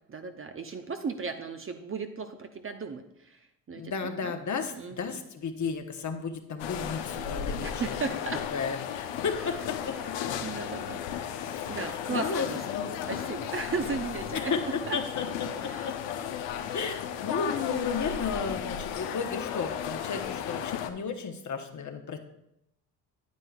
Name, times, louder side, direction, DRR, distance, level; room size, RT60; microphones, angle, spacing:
voice 1, 0.1-3.4 3.7-4.3 4.7-5.2 7.1-8.4 10.0-10.1 10.4-11.3 11.7-12.6 13.1-14.5 14.9-15.0 15.6-16.0, right 5 dB, 25° right, 6 dB, 0.7 m, -36 dB
voice 2, 3.7-8.0 8.5-10.0 11.4-13.0 14.3-15.9 16.7-17.0 17.2-22.2, left 5 dB, 35° left, 6 dB, 1.1 m, -33 dB
sound 1, 6.6-20.9, left 9 dB, 60° left, 0.8 m, -35 dB
9.5 x 9.1 x 2.4 m, 0.83 s
hypercardioid pair, 60°, 49 cm